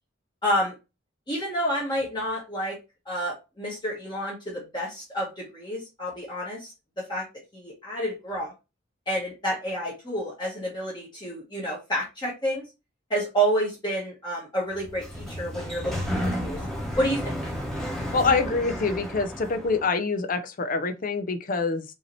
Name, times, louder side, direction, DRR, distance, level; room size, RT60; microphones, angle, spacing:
voice 1, 0.4-0.7 1.3-2.8 3.0-7.3 7.5-8.5 9.1-12.6 13.1-16.6 17.0-17.3, right 1 dB, 25° left, 1.2 m, -29 dB
Sliding door, 14.7-19.9, equal, 5° left, 1.1 m, -32 dB
voice 2, 18.1-21.8, left 4 dB, 45° left, 0.6 m, -25 dB
5.4 x 2.8 x 3.1 m
head